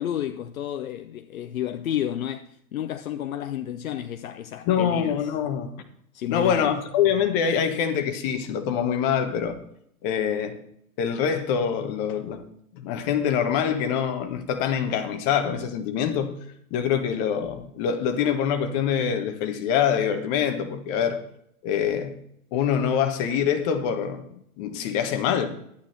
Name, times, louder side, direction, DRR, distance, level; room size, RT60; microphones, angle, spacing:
voice 1, 0.0-5.3 6.1-6.7, left 10 dB, 65° left, 0.7 m, -31 dB
voice 2, 4.6-5.7 6.3-9.6 10.0-10.6 11.0-12.4 12.7-16.4 16.7-21.2 21.6-22.1 22.5-24.2 24.6-25.5, left 8 dB, 35° left, 1.5 m, -25 dB
11.5 x 9.0 x 4.4 m
figure-of-eight pair, 110°, 45 cm